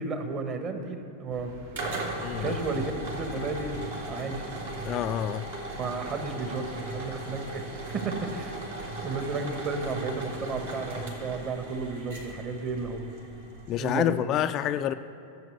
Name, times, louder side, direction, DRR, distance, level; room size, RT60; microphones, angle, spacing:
voice 1, 0.0-1.6 2.4-2.9 3.2-4.5 5.8-13.1 13.8-14.2, right 4 dB, 35° right, 6 dB, 1.4 m, -33 dB
sound 1, 1.3-13.8, right 2 dB, 65° right, 2.4 m, -37 dB
voice 2, 2.2-2.6 4.8-5.5 13.7-14.9, left 12 dB, 35° left, 10 dB, 0.3 m, -28 dB
14.0 x 7.8 x 6.6 m, 2.5 s
figure-of-eight pair, 90°, 0 cm